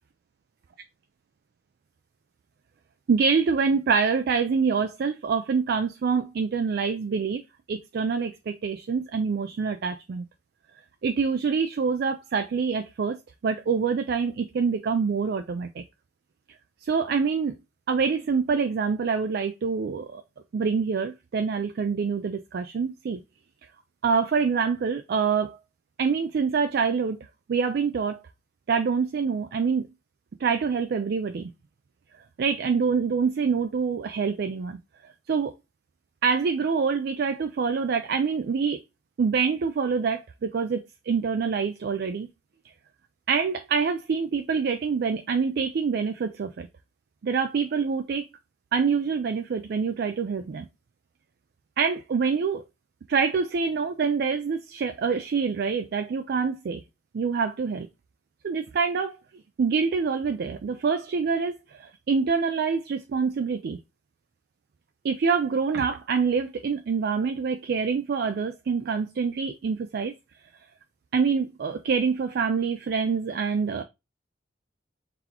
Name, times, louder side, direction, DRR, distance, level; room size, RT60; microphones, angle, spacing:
voice 1, 3.1-7.4 7.7-10.3 11.0-13.2 13.4-15.8 16.8-17.6 17.9-20.2 20.5-23.2 24.0-25.6 26.0-27.2 27.5-28.2 28.7-29.8 30.4-31.5 32.4-34.8 35.3-35.5 36.2-38.8 39.2-42.3 43.3-46.7 47.2-48.3 48.7-50.7 51.8-52.6 53.1-56.8 57.1-57.9 58.4-59.2 59.6-63.8 65.0-70.1 71.1-73.8, right 5 dB, 60° right, 0.4 m, -26 dB
4.0 x 3.5 x 2.9 m
head